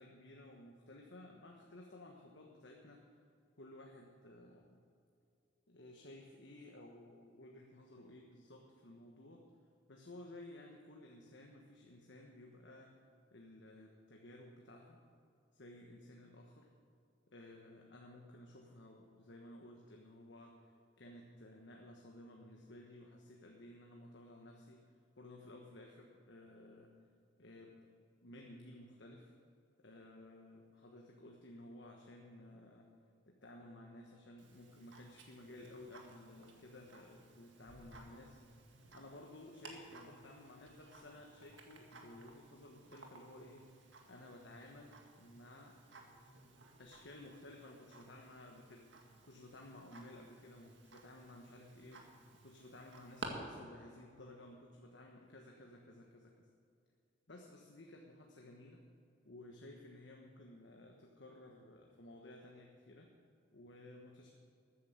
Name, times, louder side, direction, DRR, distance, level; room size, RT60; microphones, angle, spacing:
voice 1, 0.0-3.2 3.6-4.8 5.7-9.5 9.9-12.9 13.3-15.0 15.5-16.7 17.3-26.9 27.4-27.8 28.2-29.3 29.8-32.9 33.3-38.4 38.9-45.8 46.8-56.5 57.3-58.8 59.2-63.1 63.5-64.3, left 1 dB, 70° left, 0 dB, 1.3 m, -55 dB
Tick-tock, 34.4-53.3, right 3 dB, 75° right, 1.9 m, -57 dB
14.0 x 9.4 x 7.0 m, 2.4 s
head